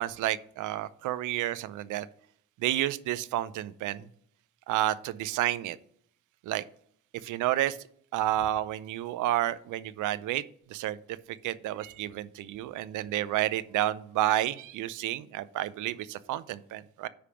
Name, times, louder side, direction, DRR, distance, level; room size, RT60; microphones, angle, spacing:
voice 1, 0.0-2.1 2.6-4.0 4.7-5.8 6.5-6.6 7.2-7.8 8.1-10.4 10.7-11.0 11.4-17.1, right 14 dB, 80° right, 16 dB, 0.6 m, -30 dB
10.0 x 3.4 x 5.8 m, 0.64 s
cardioid pair, 90°, 30 cm